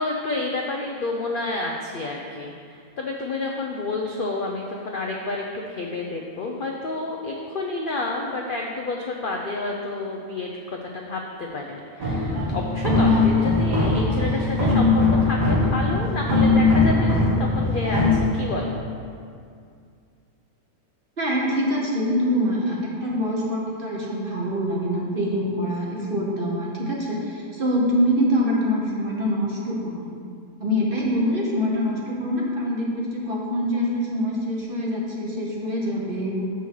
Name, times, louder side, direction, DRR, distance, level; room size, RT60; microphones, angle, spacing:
voice 1, 0.0-18.9, left 2 dB, 60° left, 0 dB, 0.5 m, -29 dB
sound 1, 12.0-18.1, left 3 dB, 65° right, 1.7 m, -20 dB
voice 2, 21.2-30.1 30.6-36.4, equal, 40° right, -3 dB, 1.2 m, -25 dB
6.9 x 6.1 x 4.6 m, 2.3 s
omnidirectional pair, 1.6 m